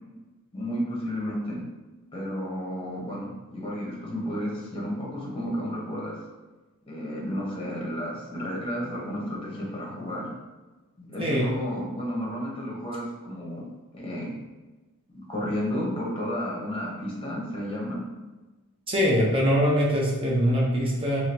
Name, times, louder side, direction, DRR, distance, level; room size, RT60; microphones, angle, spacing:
voice 1, 0.5-1.6 2.1-6.2 6.9-10.3 11.0-13.6 13.9-14.3 15.1-18.0, equal, 25° left, -3 dB, 1.0 m, -32 dB
voice 2, 18.9-21.2, equal, 25° right, -4 dB, 0.8 m, -23 dB
3.8 x 2.9 x 2.9 m, 1.2 s
head